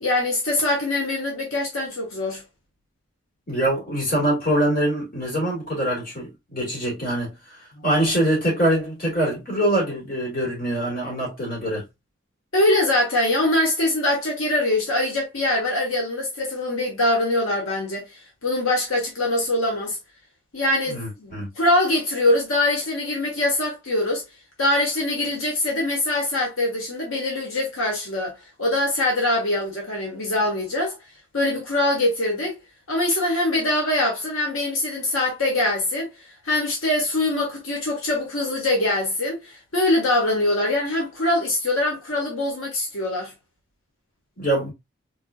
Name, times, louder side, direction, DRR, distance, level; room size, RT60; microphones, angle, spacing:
voice 1, 0.0-2.4 7.8-7.9 12.5-18.1 18.4-20.0 20.5-24.2 24.6-31.0 31.3-32.6 32.9-36.1 36.4-43.3, left 1 dB, 90° left, 1.4 m, -23 dB
voice 2, 3.5-7.3 7.8-11.8 20.9-21.5 44.4-44.7, right 1 dB, 45° left, 2.4 m, -24 dB
3.5 x 3.4 x 2.4 m
head